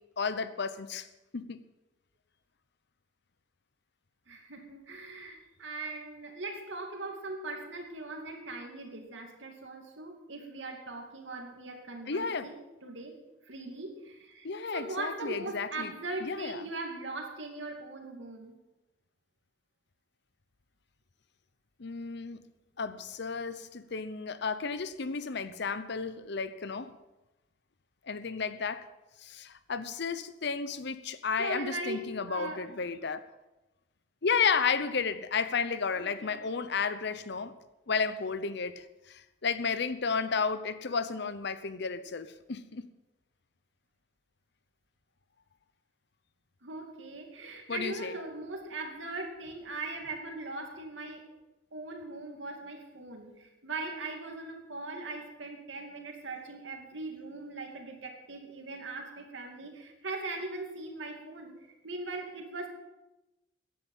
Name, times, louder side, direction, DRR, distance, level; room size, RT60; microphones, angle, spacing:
voice 1, 0.2-1.1 1.3-1.6 12.1-12.5 14.4-15.9 16.2-16.6 21.8-22.4 22.8-27.0 28.1-28.8 29.2-33.2 34.2-37.5 37.9-42.9 47.7-48.1, left 5 dB, 65° left, 0.8 m, -32 dB
voice 2, 4.3-13.2 13.4-14.5 14.7-18.6 31.4-32.6 35.9-36.4 46.6-51.3 51.7-61.5 61.8-62.7, right 2 dB, 75° right, 2.5 m, -40 dB
15.0 x 10.5 x 5.6 m
head